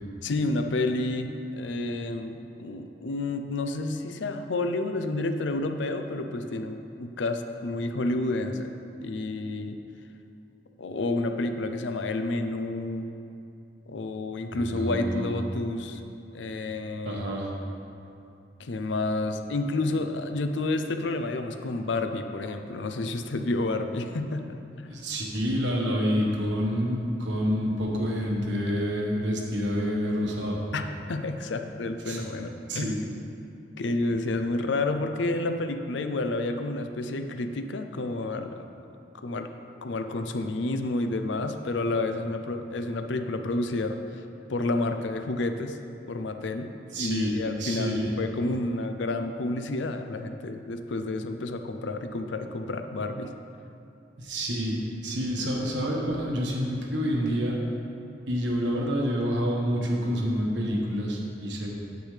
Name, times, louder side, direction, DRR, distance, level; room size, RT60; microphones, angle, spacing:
voice 1, 0.2-8.7 9.0-9.8 10.8-13.0 13.9-16.0 16.3-17.2 18.6-24.4 30.7-32.9 33.8-38.5 39.2-39.5 39.8-44.0 44.5-45.8 46.1-46.7 47.0-53.3, left 2 dB, 75° left, 7 dB, 0.5 m, -30 dB
voice 2, 14.5-15.4 17.0-17.5 24.9-30.6 32.1-32.2 32.7-33.0 46.9-48.1 54.2-57.6 58.3-61.7, equal, 70° right, -1 dB, 1.3 m, -28 dB
9.3 x 8.2 x 3.3 m, 2.7 s
head